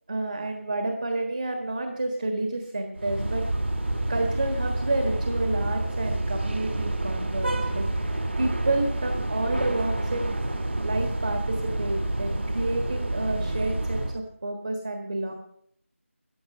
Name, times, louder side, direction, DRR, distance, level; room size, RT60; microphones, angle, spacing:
voice 1, 0.1-3.5 4.1-10.4 10.8-15.3, right 2 dB, 35° right, 4 dB, 1.5 m, -30 dB
sound 1, 3.0-14.2, right 1 dB, 50° right, 1.9 m, -28 dB
14.0 x 10.0 x 6.7 m, 0.69 s
figure-of-eight pair, 175°, 7 cm